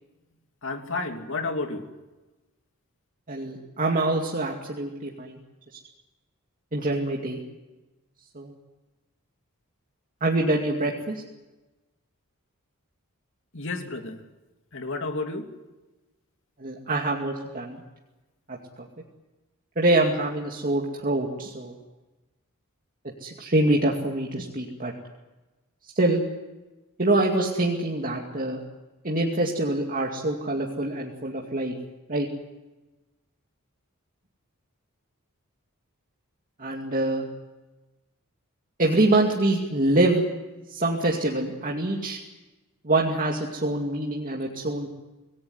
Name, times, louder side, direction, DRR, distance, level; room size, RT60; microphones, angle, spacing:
voice 1, 0.6-1.8 13.5-14.2 14.7-15.5, left 3 dB, 60° left, 4 dB, 3.0 m, -31 dB
voice 2, 3.3-5.4 6.7-7.4 8.3-8.5 10.2-11.2 16.6-17.8 18.5-18.9 19.8-21.7 23.2-24.9 25.9-26.2 27.0-28.6 29.0-31.7 32.1-32.3 36.6-37.3 38.8-40.2 40.7-42.2 42.8-44.9, right 2 dB, 40° right, -1 dB, 2.4 m, -25 dB
25.5 x 19.0 x 9.8 m, 1.1 s
head